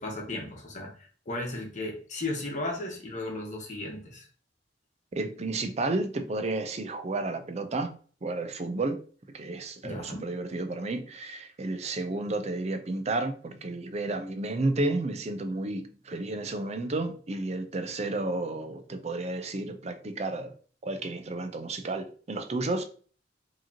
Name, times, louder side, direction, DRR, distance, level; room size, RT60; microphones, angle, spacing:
voice 1, 0.0-4.3 9.8-10.2, left 2 dB, 45° left, 1.1 m, -35 dB
voice 2, 5.1-9.0 9.3-20.5 20.8-22.8, right 2 dB, 40° right, 0.5 m, -32 dB
4.8 x 2.9 x 2.8 m
head